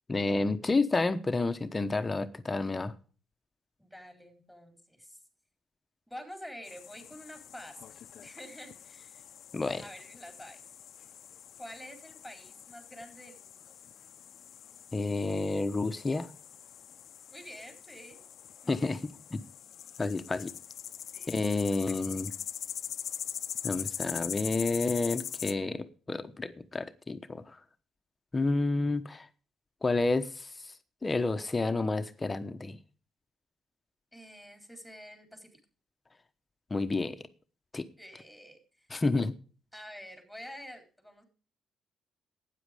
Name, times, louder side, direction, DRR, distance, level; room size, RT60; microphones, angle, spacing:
voice 1, 0.1-2.9 9.5-9.8 14.9-16.3 18.7-19.0 19.3-19.4 20.0-20.5 21.3-22.3 23.6-27.6 28.3-29.3 29.8-30.7 31.0-32.8 36.7-37.2 37.7-37.9 38.9-39.3, left 3 dB, 25° left, 1.0 m, -30 dB
voice 2, 3.8-5.2 6.1-9.2 9.8-10.6 11.6-13.6 17.3-18.2 18.6-18.8 21.1-21.6 22.0-22.1 34.1-35.6 38.0-38.9 39.7-41.2, equal, ahead, 3.9 m, -48 dB
sound 1, 6.6-25.5, left 9 dB, 65° left, 0.6 m, -43 dB
12.5 x 9.4 x 5.0 m
cardioid pair, 90°, 0 cm